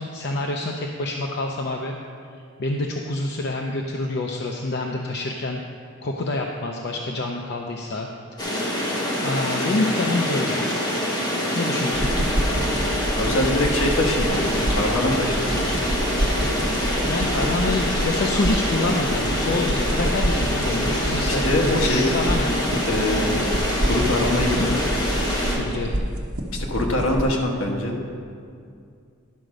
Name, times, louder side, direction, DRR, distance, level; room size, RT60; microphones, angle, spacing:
voice 1, 0.0-1.9 2.6-5.6 6.0-8.1 9.2-10.7 11.6-12.1 17.1-22.8 25.6-26.0, left 2 dB, 55° left, 1 dB, 0.6 m, -27 dB
sound 1, 8.4-25.6, equal, 20° left, 1.4 m, -25 dB
sound 2, 11.9-27.3, right 1 dB, 90° right, 1.0 m, -27 dB
voice 2, 13.2-15.8 21.4-22.0 22.8-23.5 23.8-24.9 26.5-28.0, left 1 dB, 70° left, 0 dB, 1.3 m, -24 dB
11.0 x 5.0 x 6.4 m, 2.3 s
head